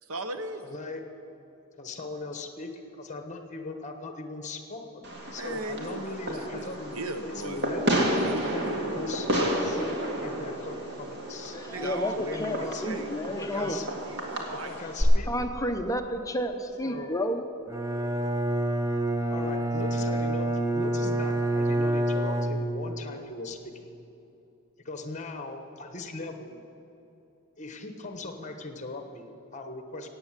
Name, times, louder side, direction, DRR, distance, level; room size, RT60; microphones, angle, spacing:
voice 1, 0.0-0.6 5.4-6.7 6.9-9.0 11.7-14.8, right 2 dB, 75° right, 9 dB, 1.0 m, -38 dB
voice 2, 0.6-1.0 1.8-7.8 8.4-9.3 9.6-9.9 10.2-11.6 12.2-12.8 13.2-13.9 14.5-15.3 16.8-17.1 19.3-23.9 24.8-26.6 27.6-30.1, left 3 dB, 35° left, 6 dB, 1.2 m, -39 dB
Fireworks, 5.0-15.0, equal, 50° right, 2.1 m, -31 dB
voice 3, 11.5-13.8 14.8-14.9 15.3-17.4, left 1 dB, 15° left, 6 dB, 0.7 m, -31 dB
Bowed string instrument, 17.7-23.1, right 1 dB, 15° right, 0.8 m, -27 dB
16.0 x 8.9 x 7.4 m, 2.9 s
head